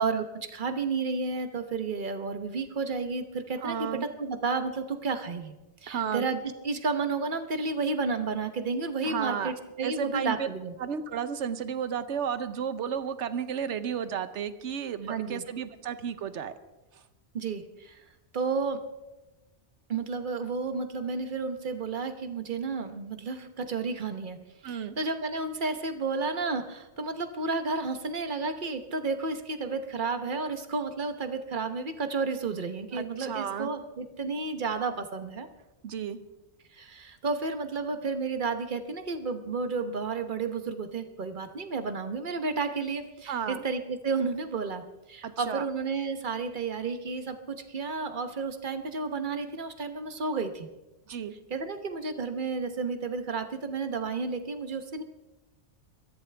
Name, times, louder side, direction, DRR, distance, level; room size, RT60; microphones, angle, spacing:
voice 1, 0.0-5.5 5.8-6.4 6.6-10.7 15.0-15.4 17.3-18.0 18.3-18.8 19.9-24.4 24.6-35.5 36.7-44.8 45.1-50.7 51.5-55.0, right 4 dB, 45° right, 8 dB, 1.2 m, -32 dB
voice 2, 3.6-4.1 5.9-6.3 9.0-9.5 9.8-10.5 10.8-16.5 16.9-17.0 24.6-25.0 32.9-33.7 35.8-36.2 43.3-43.6 45.2-45.7 51.1-51.3, right 8 dB, 80° right, 12 dB, 1.1 m, -33 dB
22.5 x 14.5 x 3.4 m, 1.1 s
omnidirectional pair, 1.2 m